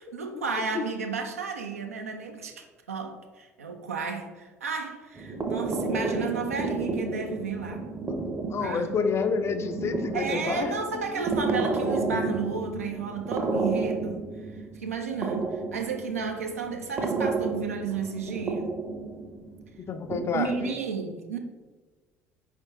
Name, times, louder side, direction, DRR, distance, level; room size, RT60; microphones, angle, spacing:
voice 1, 0.0-7.9 8.6-8.8 10.1-14.2 14.5-18.7 20.3-21.4, right 5 dB, 80° right, 5 dB, 0.4 m, -33 dB
sound 1, 5.1-20.6, right 3 dB, 25° right, 0.6 m, -31 dB
voice 2, 8.5-11.0 19.8-20.8, left 5 dB, 35° left, 9 dB, 0.4 m, -29 dB
4.5 x 3.3 x 2.9 m, 1.3 s
figure-of-eight pair, 55°, 8 cm